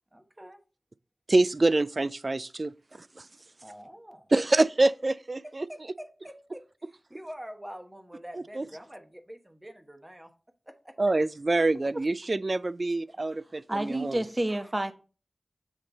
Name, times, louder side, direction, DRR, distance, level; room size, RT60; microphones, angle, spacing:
voice 1, 0.1-0.6 3.6-4.3 5.4-10.3 10.6-10.9 14.5-14.7, equal, 20° right, 1.1 m, -46 dB
voice 2, 1.3-2.7 3.2-3.3 4.3-5.6 8.6-8.7 11.0-14.2, right 2 dB, 50° right, 0.3 m, -25 dB
voice 3, 13.7-14.9, right 1 dB, 35° right, 0.7 m, -29 dB
7.4 x 3.3 x 3.9 m
wide cardioid pair, 50°, 0 cm